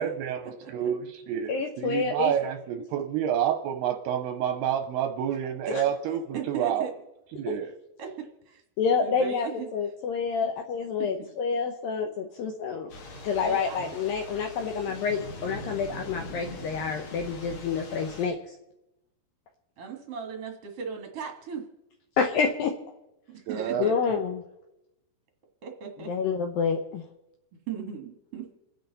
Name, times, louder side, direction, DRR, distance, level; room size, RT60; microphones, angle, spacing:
voice 1, 0.0-6.9 7.4-7.8 23.5-24.2, right 9 dB, 80° right, 6 dB, 2.5 m, -29 dB
voice 2, 1.5-2.3 7.5-7.6 8.8-9.5 9.7-12.9 13.2-18.4 22.2-22.7 23.8-24.4 26.1-27.0, left 5 dB, 75° left, 4 dB, 2.2 m, -28 dB
voice 3, 6.3-6.9 8.0-8.1 9.0-9.7 10.4-10.5 11.0-11.1 13.4-13.8 19.8-21.6 23.3-23.9 25.6-26.1 27.7-28.4, right 6 dB, 55° right, 3 dB, 1.7 m, -37 dB
Thunder / Rain, 12.9-18.3, left 1 dB, 60° left, 1.4 m, -42 dB
29.0 x 9.9 x 4.0 m, 0.92 s
omnidirectional pair, 5.1 m